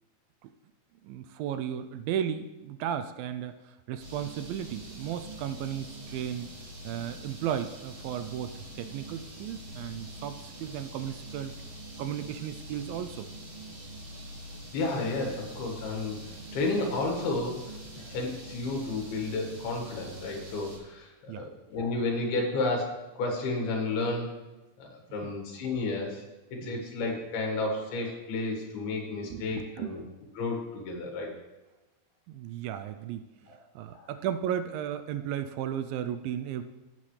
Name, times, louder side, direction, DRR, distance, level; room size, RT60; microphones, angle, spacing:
voice 1, 1.0-6.5 6.8-11.5 12.0-13.3 21.3-21.5 25.2-25.3 26.6-26.8 29.2-29.9 32.3-36.6, right 10 dB, 80° right, 10 dB, 2.2 m, -35 dB
sound 1, 4.0-20.8, right 1 dB, 35° right, 4.0 m, -44 dB
voice 2, 14.7-17.6 18.0-24.3 24.8-26.2 26.6-30.0 30.4-31.3 33.9-34.1, left 2 dB, 85° left, 1 dB, 3.7 m, -32 dB
16.5 x 7.4 x 3.3 m, 1.1 s
omnidirectional pair, 4.3 m